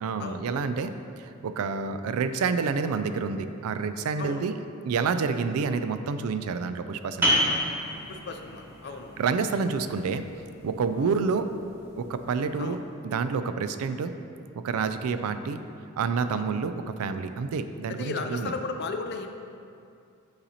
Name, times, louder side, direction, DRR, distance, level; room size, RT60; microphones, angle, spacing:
voice 1, 0.0-7.4 9.2-10.3 10.6-11.5 12.0-14.1 14.5-15.6 16.0-18.5, right 5 dB, 80° right, 10 dB, 0.3 m, -28 dB
sound 1, 7.2-12.6, equal, 10° right, 1.1 m, -31 dB
voice 2, 8.1-9.2 11.0-11.1 12.6-12.8 15.2-15.3 16.2-16.6 17.9-19.4, left 4 dB, 50° left, 5 dB, 0.4 m, -36 dB
9.6 x 4.1 x 2.8 m, 2.5 s
head